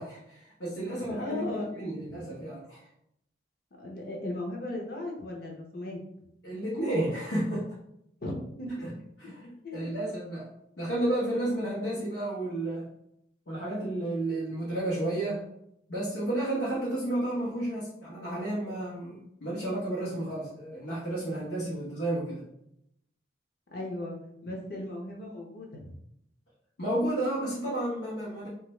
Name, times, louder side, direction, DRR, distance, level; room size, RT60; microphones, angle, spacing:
voice 1, 0.0-2.8 6.4-7.7 8.8-8.9 9.2-10.5 10.8-12.9 13.5-15.4 15.9-22.4 26.8-28.5, right 1 dB, 80° left, -8 dB, 1.0 m, -32 dB
voice 2, 0.9-1.7 2.1-2.2 3.8-6.0 8.2-8.9 9.2-9.3 9.6-9.9 23.7-24.2 24.4-25.9, left 1 dB, 55° left, 0 dB, 0.8 m, -37 dB
3.2 x 2.5 x 3.1 m, 0.77 s
head